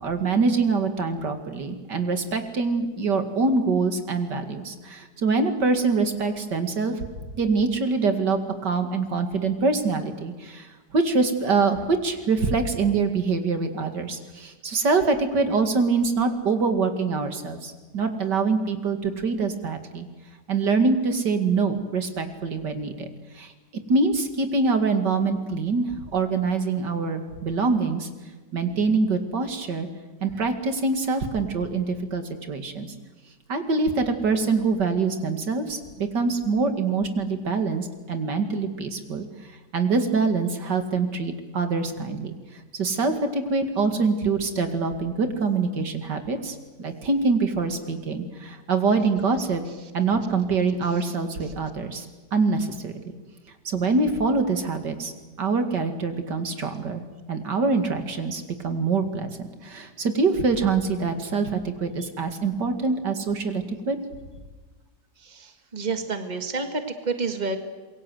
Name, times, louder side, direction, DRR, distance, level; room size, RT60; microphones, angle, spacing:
voice 1, 0.0-6.9 7.4-20.1 20.5-23.1 23.3-23.5 23.9-28.1 28.5-29.9 30.2-32.9 33.5-39.3 39.7-49.6 49.9-52.9 53.6-55.1 55.4-57.0 57.3-59.3 59.6-64.0, right 4 dB, 85° right, 7 dB, 2.9 m, -24 dB
voice 2, 65.2-67.6, right 4 dB, 25° right, 7 dB, 2.0 m, -29 dB
26.5 x 22.5 x 7.9 m, 1.3 s
omnidirectional pair, 1.8 m